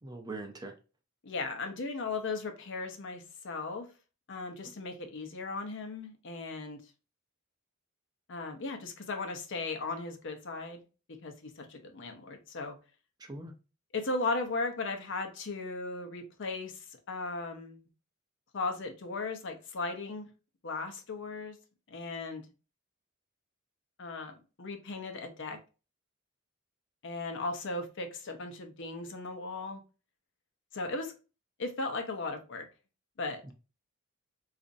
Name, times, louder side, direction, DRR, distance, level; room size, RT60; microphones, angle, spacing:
voice 1, 0.0-0.7 13.2-13.5 33.4-33.5, right 2 dB, 20° right, 0.5 m, -42 dB
voice 2, 1.2-3.9 4.3-6.8 8.3-10.8 11.2-12.8 13.9-17.8 18.5-20.3 20.6-21.6 21.9-22.5 24.0-25.6 27.0-29.8 30.7-31.1 31.6-32.7 33.2-33.5, left 3 dB, 60° left, 0.7 m, -37 dB
4.1 x 2.5 x 2.5 m
head